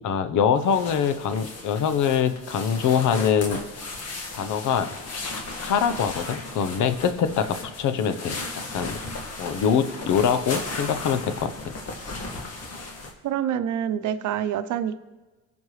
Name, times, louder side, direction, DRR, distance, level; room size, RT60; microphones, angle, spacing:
voice 1, 0.0-3.6 4.3-4.9 5.3-8.4 8.7-9.0 9.4-11.5, left 7 dB, 80° left, 11 dB, 0.9 m, -24 dB
sound 1, 0.6-13.1, left 3 dB, 55° left, 1.9 m, -36 dB
voice 2, 13.2-15.1, right 10 dB, 75° right, 11 dB, 0.7 m, -27 dB
20.0 x 7.3 x 3.2 m, 1.2 s
cardioid pair, 90°, 30 cm